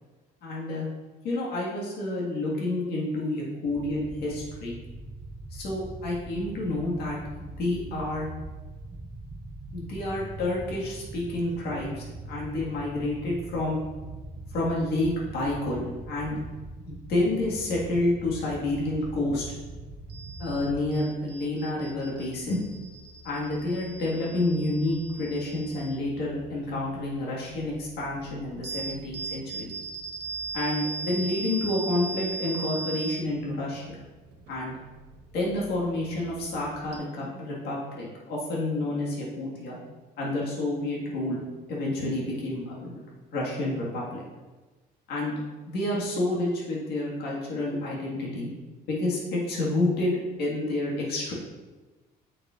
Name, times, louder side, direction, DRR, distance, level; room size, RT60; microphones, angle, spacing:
voice 1, 0.4-0.9 1.2-4.8 5.5-8.3 9.7-13.8 14.5-16.4 16.9-19.5 20.4-22.6 23.2-29.7 30.5-34.0 34.5-34.7 35.3-39.8 40.2-43.0 43.3-44.2 45.1-45.3 45.7-48.5 48.9-51.3, left 2 dB, 75° left, -4 dB, 1.7 m, -29 dB
sound 1, 3.7-20.9, right 2 dB, 25° right, 0.6 m, -42 dB
sound 2, 19.3-37.0, right 4 dB, 85° right, 0.9 m, -40 dB
8.4 x 4.9 x 2.4 m, 1.2 s
cardioid pair, 110°, 17 cm